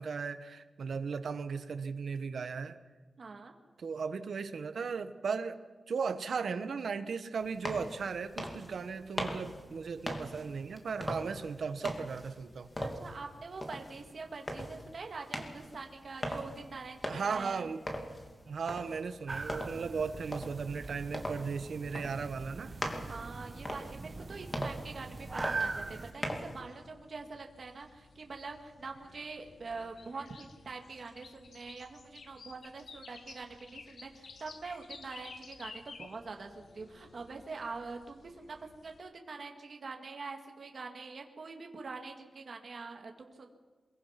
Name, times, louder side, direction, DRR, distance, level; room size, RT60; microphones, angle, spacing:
voice 1, 0.0-2.8 3.8-5.6 5.9-12.7 17.1-17.8 18.5-22.7 24.6-24.7, right 5 dB, 75° right, 10 dB, 1.2 m, -36 dB
voice 2, 3.2-3.5 12.8-17.7 23.0-43.5, right 4 dB, 50° right, 3 dB, 2.1 m, -44 dB
sound 1, 7.4-26.6, equal, 20° left, 2.6 m, -41 dB
sound 2, 19.3-26.1, right 3 dB, 30° right, 1.2 m, -41 dB
sound 3, 25.2-39.0, left 4 dB, 65° left, 1.4 m, -54 dB
23.0 x 22.0 x 5.9 m, 1.3 s
wide cardioid pair, 150°, 0 cm